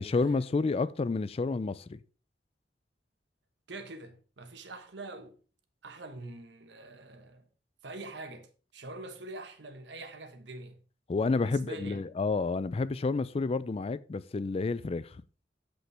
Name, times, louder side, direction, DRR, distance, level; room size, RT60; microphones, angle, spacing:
voice 1, 0.0-2.0 11.1-15.2, left 3 dB, 35° left, 0.4 m, -30 dB
voice 2, 3.7-5.4 5.8-7.5 7.8-10.8 11.3-12.0, right 2 dB, 75° right, 1.2 m, -44 dB
14.0 x 5.2 x 3.3 m
head